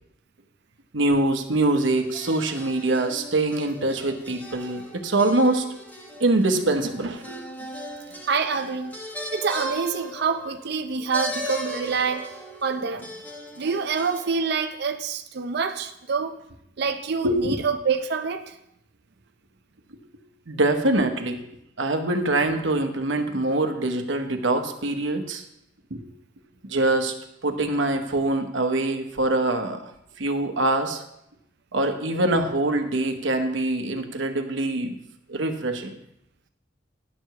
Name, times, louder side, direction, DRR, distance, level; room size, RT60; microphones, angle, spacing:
voice 1, 0.9-5.6 6.2-7.4 17.2-17.6 20.5-21.4 21.8-25.4 25.9-26.0 26.6-27.1 27.4-29.9 30.2-31.0 31.7-35.0 35.3-35.9, right 2 dB, 75° right, 6 dB, 1.0 m, -24 dB
sound 1, 1.8-14.6, equal, 10° left, 1.2 m, -38 dB
voice 2, 8.3-8.9 9.3-12.3 12.6-13.1 13.6-16.3 16.8-18.6, right 5 dB, 55° right, 8 dB, 0.5 m, -26 dB
10.5 x 4.7 x 6.8 m, 0.79 s
head